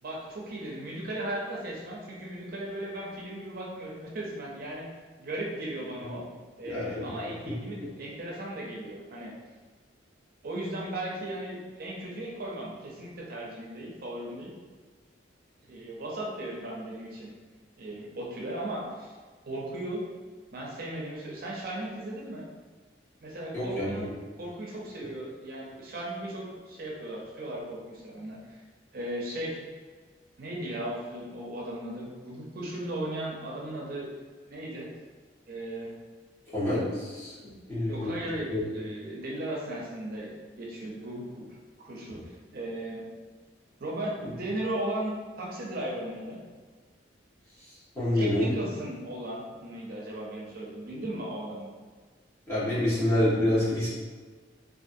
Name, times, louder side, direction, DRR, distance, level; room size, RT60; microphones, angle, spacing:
voice 1, 0.0-4.9 5.2-6.2 6.6-9.3 10.4-14.5 15.7-17.3 17.8-19.1 19.5-20.0 20.5-22.5 23.2-24.1 24.4-28.6 28.9-29.6 30.4-34.1 34.5-34.9 35.5-35.9 37.9-41.4 41.8-43.0 43.8-46.4 48.1-51.7, right 1 dB, 55° right, -3 dB, 0.5 m, -36 dB
voice 2, 6.6-7.1 23.5-24.1 36.5-37.3 37.7-38.1 38.5-38.6 42.1-42.2 44.2-44.3 47.9-48.5 52.5-53.9, left 1 dB, 15° left, -12 dB, 1.1 m, -27 dB
2.5 x 2.4 x 2.5 m, 1.4 s
head